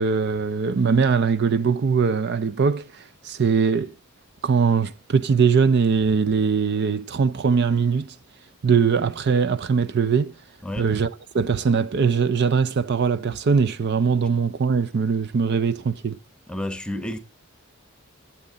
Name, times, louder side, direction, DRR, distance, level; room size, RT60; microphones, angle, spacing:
voice 1, 0.0-3.9 4.4-8.1 8.6-10.3 10.8-11.1 11.3-16.2, right 5 dB, 50° right, 0.4 m, -21 dB
voice 2, 10.6-10.9 16.5-17.2, left 1 dB, 5° left, 0.9 m, -30 dB
14.0 x 7.3 x 3.8 m
head